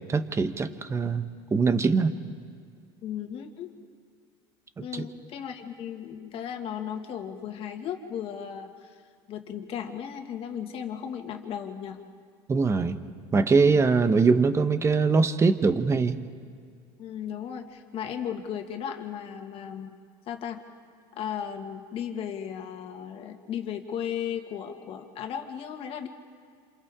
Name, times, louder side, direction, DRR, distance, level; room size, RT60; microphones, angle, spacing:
voice 1, 0.1-1.2 1.5-2.2 4.8-5.0 12.5-13.0 13.3-16.2, right 4 dB, 20° right, 10 dB, 1.1 m, -22 dB
voice 2, 3.0-3.7 4.8-9.0 9.3-12.0 17.0-20.0 20.3-20.6 21.2-26.1, left 8 dB, 50° left, 5 dB, 2.1 m, -35 dB
28.0 x 27.5 x 3.7 m, 2.2 s
supercardioid pair, 100°, 12 cm